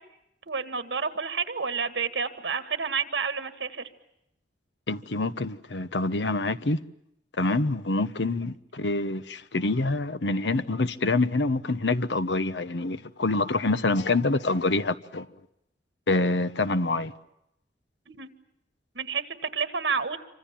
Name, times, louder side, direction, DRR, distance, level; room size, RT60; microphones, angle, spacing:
voice 1, 0.5-3.9 18.1-18.3 19.0-20.2, right 5 dB, 90° right, 1.8 m, -30 dB
voice 2, 4.9-6.8 7.4-15.3 16.1-17.1, left 2 dB, 85° left, 1.0 m, -26 dB
27.5 x 25.0 x 7.4 m
head